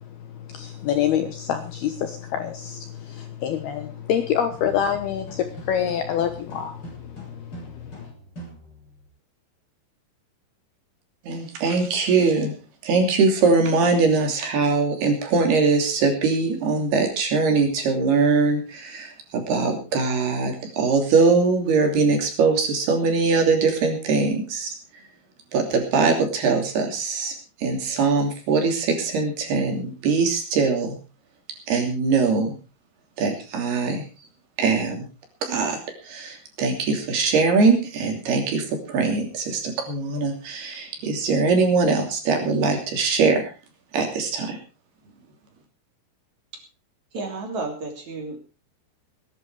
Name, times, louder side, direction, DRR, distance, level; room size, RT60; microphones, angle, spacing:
voice 1, 0.3-8.1, left 9 dB, 70° left, 8 dB, 2.6 m, -27 dB
sound 1, 4.4-9.1, right 1 dB, 20° left, 7.5 m, -44 dB
voice 2, 11.2-12.6 12.8-24.7 25.5-31.0 31.7-32.5 33.2-34.0 34.6-35.0 35.4-43.5 43.9-44.6, right 4 dB, 55° right, 3 dB, 4.7 m, -22 dB
voice 3, 47.1-48.4, right 3 dB, 40° right, 3 dB, 4.0 m, -32 dB
20.0 x 11.0 x 4.8 m, 0.33 s
omnidirectional pair, 5.7 m